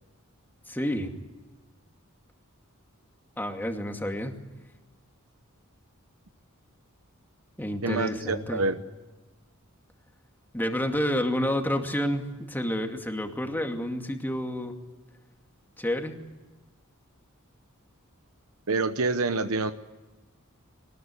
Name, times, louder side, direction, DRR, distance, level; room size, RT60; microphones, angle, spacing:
voice 1, 0.7-1.1 3.4-4.3 7.6-8.6 10.5-14.8 15.8-16.2, equal, 10° left, 4 dB, 2.4 m, -29 dB
voice 2, 7.8-8.8 18.7-19.7, right 3 dB, 70° right, 9 dB, 1.0 m, -27 dB
22.5 x 20.5 x 9.8 m, 1.2 s
head